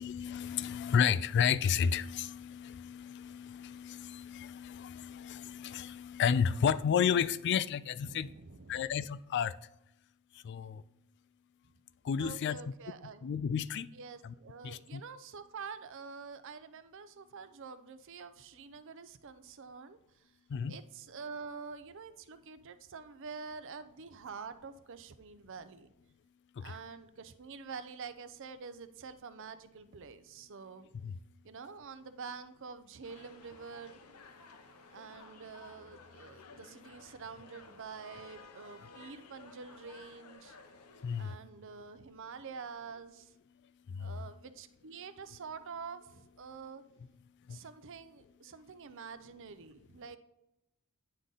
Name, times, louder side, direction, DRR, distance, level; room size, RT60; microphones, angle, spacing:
voice 1, 0.0-8.3 8.7-9.5 10.3-10.8 12.0-12.6 13.2-13.9 14.2-14.3 14.6-15.0 20.5-20.8 26.6-26.7 31.0-31.1 41.0-41.4 43.9-44.1 47.5-47.6, left 7 dB, 50° left, 0.3 m, -32 dB
voice 2, 8.0-8.9 12.2-13.3 13.9-20.3 20.7-25.9 26.6-30.9 31.4-34.0 34.9-40.6 41.2-43.3 44.0-46.8 47.5-50.2, right 5 dB, 60° right, 0.5 m, -47 dB
sound 1, 33.0-41.4, left 4 dB, 80° left, 0.7 m, -55 dB
9.6 x 3.8 x 3.9 m
head